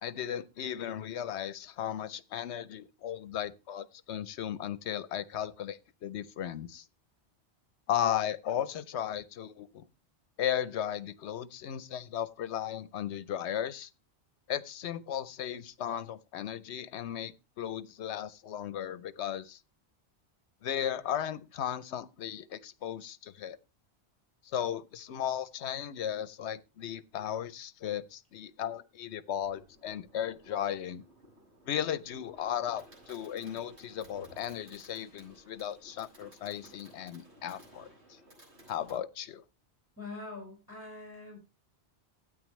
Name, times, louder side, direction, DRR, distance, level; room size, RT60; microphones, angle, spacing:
voice 1, 0.0-6.9 7.9-9.8 10.4-13.9 14.5-19.6 20.6-23.6 24.5-31.0 31.7-37.9 38.7-39.4, left 10 dB, 75° left, 1.0 m, -36 dB
Fireworks, 29.4-39.0, right 1 dB, 75° right, 6.7 m, -57 dB
voice 2, 40.0-41.4, left 3 dB, 10° left, 5.3 m, -43 dB
12.5 x 9.2 x 3.1 m
omnidirectional pair, 1.1 m